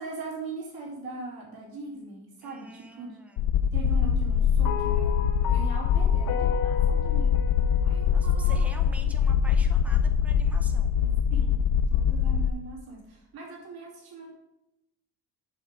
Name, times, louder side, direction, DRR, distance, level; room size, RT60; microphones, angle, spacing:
voice 1, 0.0-3.2 3.7-5.2 5.4-7.3 7.8-9.0 11.3-11.6 11.9-14.3, right 3 dB, 75° right, -4 dB, 2.6 m, -41 dB
voice 2, 2.4-3.4 8.1-10.9, right 1 dB, 5° right, 4 dB, 0.6 m, -47 dB
sound 1, 3.4-12.5, left 7 dB, 85° left, 0.5 m, -23 dB
sound 2, 4.6-9.1, left 8 dB, 50° left, 0.8 m, -35 dB
6.5 x 5.5 x 5.2 m, 0.92 s
cardioid pair, 175°, 37 cm